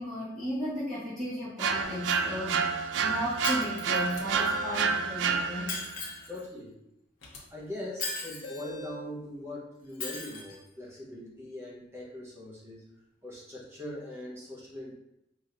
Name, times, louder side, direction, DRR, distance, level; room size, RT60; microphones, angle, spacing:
voice 1, 0.0-5.9, equal, ahead, -13 dB, 1.5 m, -35 dB
sound 1, 1.6-5.9, right 5 dB, 70° right, 0.3 m, -29 dB
Shatter, 3.4-4.4 5.7-6.4 8.0-8.6 10.0-10.6, left 3 dB, 45° left, 0.9 m, -37 dB
sound 2, 4.0-4.9 7.2-7.4 8.4-9.0, right 1 dB, 85° left, 0.9 m, -43 dB
voice 2, 6.3-6.7 7.5-12.8 13.2-14.9, left 1 dB, 15° right, -5 dB, 1.1 m, -41 dB
5.0 x 3.0 x 2.6 m, 0.84 s
head